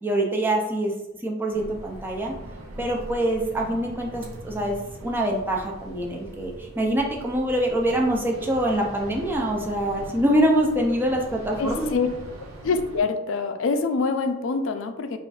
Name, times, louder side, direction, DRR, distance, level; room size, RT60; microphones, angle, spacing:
voice 1, 0.0-0.9 1.2-2.3 2.8-11.9, right 1 dB, 10° right, 0 dB, 0.4 m, -24 dB
sound 1, 1.5-13.0, right 1 dB, 85° right, 0.6 m, -41 dB
voice 2, 11.6-12.1 12.6-15.2, left 4 dB, 65° left, 7 dB, 0.4 m, -25 dB
4.9 x 2.4 x 2.4 m, 0.95 s
head